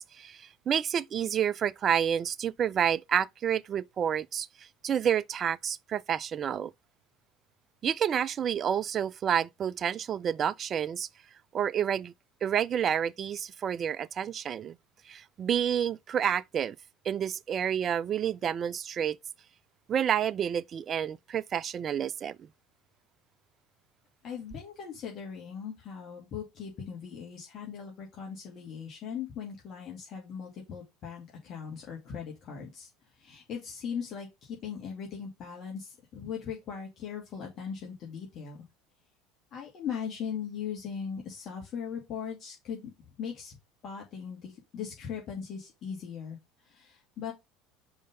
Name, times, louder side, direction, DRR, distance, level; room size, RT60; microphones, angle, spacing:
voice 1, 0.0-6.7 7.8-11.1 11.5-12.1 12.4-14.7 15.1-16.8 17.0-19.2 19.9-22.4, right 9 dB, 40° right, 0.3 m, -29 dB
voice 2, 24.2-38.7 39.5-42.9 43.2-43.6 43.8-47.3, left 7 dB, 50° left, 2.3 m, -39 dB
5.2 x 3.8 x 5.2 m
hypercardioid pair, 80°, 0 cm